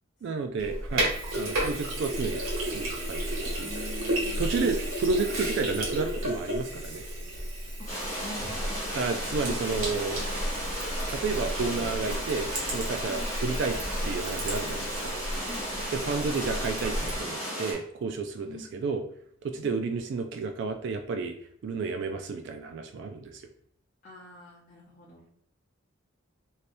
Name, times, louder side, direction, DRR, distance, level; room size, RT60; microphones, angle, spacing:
voice 1, 0.2-3.7 4.4-7.0 8.9-10.3 11.1-13.8 14.0-15.2 15.9-19.0 19.4-21.4 21.6-23.5, right 4 dB, 60° right, 6 dB, 0.3 m, -31 dB
Sink (filling or washing), 0.6-17.2, right 1 dB, 85° right, 1.2 m, -33 dB
voice 2, 3.6-4.8 7.8-7.9 8.2-8.8 9.4-10.0 13.0-13.4 15.4-16.1 18.4-18.8 19.6-19.9 24.0-25.3, left 1 dB, 40° left, -6 dB, 0.7 m, -45 dB
sound 1, 7.9-17.7, equal, 15° left, 1.5 m, -34 dB
3.3 x 2.7 x 2.6 m, 0.64 s
head